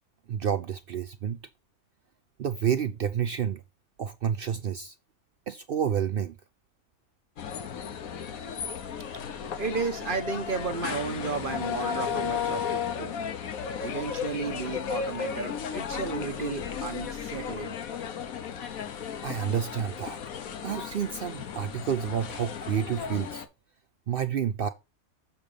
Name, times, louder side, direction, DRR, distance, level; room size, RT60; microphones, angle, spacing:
voice 1, 0.3-1.4 2.4-3.6 4.0-4.9 5.5-6.4 19.2-20.2 20.6-23.4 24.1-24.7, right 8 dB, 70° right, 0.5 m, -29 dB
sound 1, 7.4-23.5, left 7 dB, 75° left, 1.3 m, -34 dB
voice 2, 9.1-13.1 13.8-17.7, right 4 dB, 40° right, 1.1 m, -33 dB
7.0 x 5.3 x 4.9 m
omnidirectional pair, 1.5 m